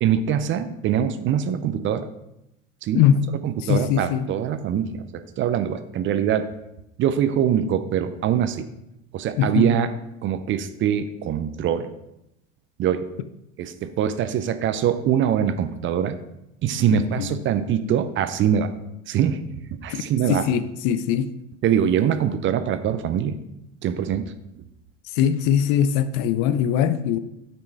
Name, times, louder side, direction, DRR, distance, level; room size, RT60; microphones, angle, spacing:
voice 1, 0.0-2.1 2.8-3.0 3.4-6.5 7.0-8.7 9.1-9.9 10.2-11.9 12.8-13.1 13.6-16.2 16.6-18.7 19.1-19.4 19.8-20.5 21.6-23.4 23.8-24.6, right 9 dB, 30° right, 0.5 m, -23 dB
voice 2, 2.9-3.3 3.6-4.3 9.4-9.7 16.9-17.4 19.9-20.0 20.3-21.3 25.1-27.2, left 9 dB, 50° left, 0.6 m, -21 dB
8.7 x 4.3 x 4.5 m
hypercardioid pair, 85°, 38 cm